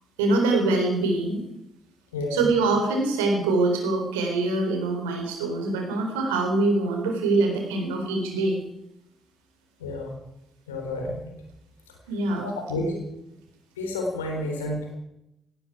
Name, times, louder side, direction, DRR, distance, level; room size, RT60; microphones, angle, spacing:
voice 1, 0.2-1.4 2.3-8.6 12.1-12.5, right 2 dB, 75° right, 2 dB, 3.9 m, -24 dB
voice 2, 9.8-10.1 10.7-11.3 12.4-13.0 13.8-14.9, left 1 dB, 80° left, 2 dB, 3.5 m, -30 dB
17.5 x 17.0 x 4.8 m, 0.85 s
figure-of-eight pair, 40°, 0 cm